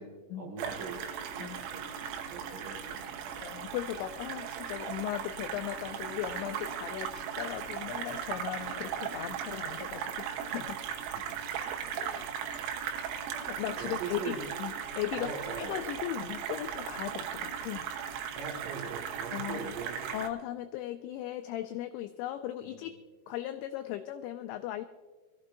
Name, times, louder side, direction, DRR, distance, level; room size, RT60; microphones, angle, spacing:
voice 1, 0.0-3.3 11.1-11.4 13.8-14.5 15.2-15.8 18.3-20.1 22.6-22.9, right 4 dB, 60° right, -2 dB, 2.4 m, -42 dB
sound 1, 0.6-20.3, right 8 dB, 85° right, 3.8 m, -38 dB
voice 2, 3.4-10.8 12.0-12.4 13.5-15.3 15.6-17.9 19.3-19.6 20.1-22.9 23.3-24.9, left 13 dB, 90° left, 7 dB, 2.6 m, -37 dB
23.0 x 14.5 x 2.6 m, 1.3 s
omnidirectional pair, 5.9 m